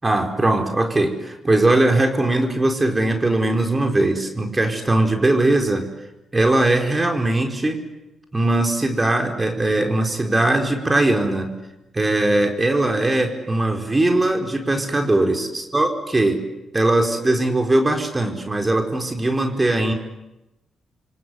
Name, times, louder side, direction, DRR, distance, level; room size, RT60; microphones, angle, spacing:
voice 1, 0.0-5.9 6.3-7.8 8.3-11.5 11.9-16.4 16.7-19.9, right 2 dB, 25° right, 4 dB, 4.6 m, -20 dB
29.5 x 25.0 x 8.1 m, 0.95 s
hypercardioid pair, 40°, 0 cm